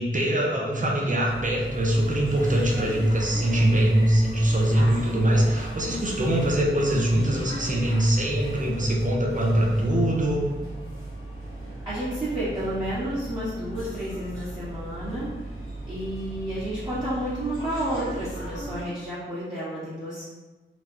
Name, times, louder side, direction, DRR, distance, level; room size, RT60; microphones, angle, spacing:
voice 1, 0.0-10.5, right 1 dB, 40° right, -2 dB, 0.8 m, -23 dB
sound 1, 1.3-18.8, right 1 dB, 80° left, 1.1 m, -36 dB
voice 2, 11.8-15.3 15.8-20.2, right 1 dB, 25° right, -14 dB, 1.3 m, -31 dB
3.0 x 2.3 x 3.6 m, 1.2 s
cardioid pair, 45°, 21 cm